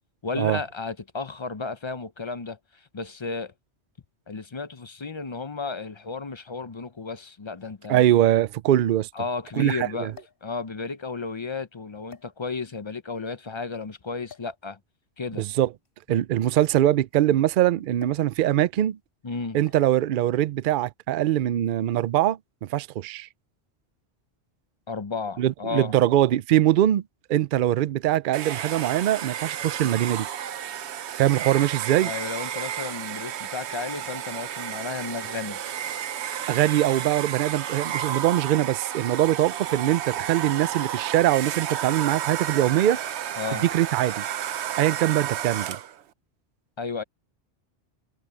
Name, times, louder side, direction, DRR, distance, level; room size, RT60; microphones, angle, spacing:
voice 1, 0.2-3.5 4.3-8.0 9.1-10.1 10.4-14.8 15.2-15.5 19.2-19.6 24.9-25.9 32.0-35.6 43.4-43.6 46.8-47.0, left 4 dB, 35° left, 0.5 m, -33 dB
sound 1, 6.4-6.5 7.6-7.7 7.9-8.0 10.1-10.5 11.3-11.5 12.1-12.8 14.3-14.6 15.7-17.4 18.0-18.4 18.6-18.9 19.7-20.0 21.0-21.3, left 7 dB, 55° left, 4.8 m, -51 dB
voice 2, 7.9-9.1 9.6-10.1 15.4-15.7 16.1-19.0 19.5-23.3 25.4-27.0 27.3-30.3 31.2-32.1 36.5-43.0 43.6-44.2 44.8-45.8, right 13 dB, 60° right, 0.6 m, -22 dB
Domestic sounds home sounds, 28.3-46.0, right 10 dB, 75° right, 1.0 m, -32 dB
omnidirectional pair, 1.2 m